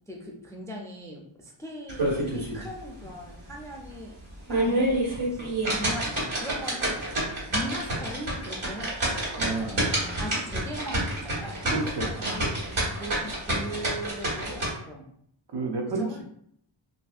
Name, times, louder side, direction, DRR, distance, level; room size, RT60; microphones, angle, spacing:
voice 1, 0.1-4.2 4.5-5.0 5.3-9.5 10.1-15.1 16.0-16.2, equal, 5° left, -1 dB, 0.4 m, -39 dB
sound 1, 1.9-2.6 3.0-3.1 3.6-3.7 4.3-14.7, right 1 dB, 75° right, 1.5 m, -28 dB
voice 2, 9.4-10.2 11.7-12.4 15.5-16.2, right 3 dB, 60° right, 1 dB, 0.6 m, -31 dB
2.8 x 2.6 x 2.4 m, 0.68 s
wide cardioid pair, 95°, 49 cm